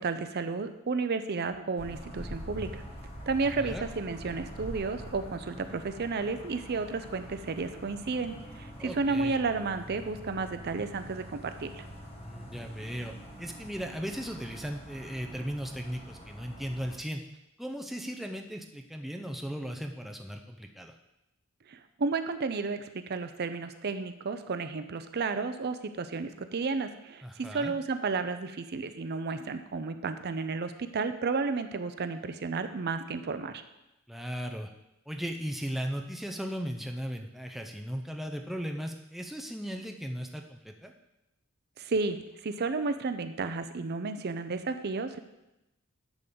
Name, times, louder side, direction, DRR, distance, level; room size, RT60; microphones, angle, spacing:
voice 1, 0.0-2.8 3.3-11.8 21.7-33.6 41.8-42.2 42.4-45.2, right 4 dB, 45° right, 10 dB, 0.5 m, -32 dB
sound 1, 1.8-17.0, equal, 25° left, 1.2 m, -45 dB
voice 2, 8.8-9.3 12.2-17.2 17.6-20.9 27.2-27.7 34.1-34.7 35.1-40.9, equal, ahead, 3 dB, 0.5 m, -37 dB
10.5 x 3.7 x 6.8 m, 0.92 s
head